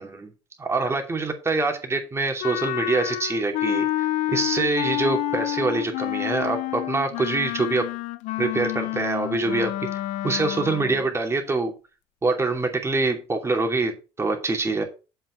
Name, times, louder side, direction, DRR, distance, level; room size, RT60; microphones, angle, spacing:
voice 1, 0.7-7.9 8.4-9.7 10.2-11.7 12.2-14.8, right 3 dB, 20° right, 3 dB, 2.6 m, -25 dB
Wind instrument woodwind instrument, 2.4-11.0, left 15 dB, 75° left, 0.6 m, -28 dB
7.6 x 5.8 x 5.4 m, 0.31 s
cardioid pair, 100°, 12 cm